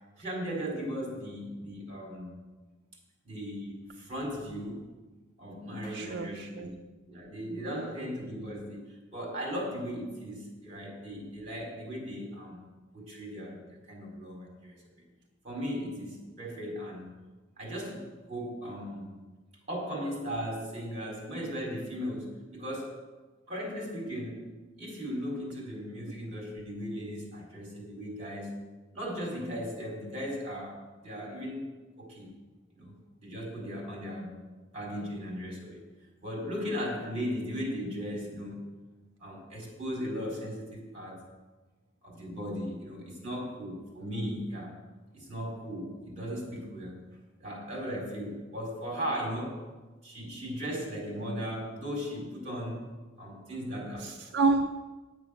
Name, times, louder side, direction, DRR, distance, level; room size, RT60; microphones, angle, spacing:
voice 1, 0.2-2.4 3.2-4.9 5.4-12.6 12.9-14.8 15.4-17.1 17.6-19.1 19.7-23.0 23.5-28.6 28.9-31.7 32.0-32.3 32.7-34.4 34.7-35.8 36.2-38.6 39.2-41.2 42.0-44.8 45.1-47.0 47.4-49.6 50.0-52.9 53.2-54.1, equal, 35° right, -2 dB, 4.2 m, -37 dB
voice 2, 5.9-6.8 7.7-7.9 54.0-54.7, right 3 dB, 60° right, 4 dB, 0.5 m, -29 dB
9.8 x 8.4 x 6.4 m, 1.2 s
head